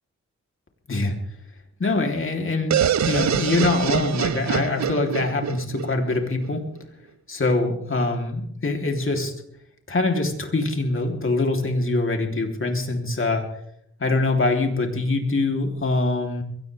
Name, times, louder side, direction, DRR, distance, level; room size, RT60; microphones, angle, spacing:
voice 1, 1.8-2.8 3.0-6.7 7.3-9.3 9.9-13.4 14.0-16.4, left 2 dB, 45° left, 2 dB, 3.4 m, -24 dB
sound 1, 2.7-6.5, right 9 dB, 70° right, 0.6 m, -25 dB
22.5 x 17.5 x 3.5 m, 0.74 s
cardioid pair, 75°, 29 cm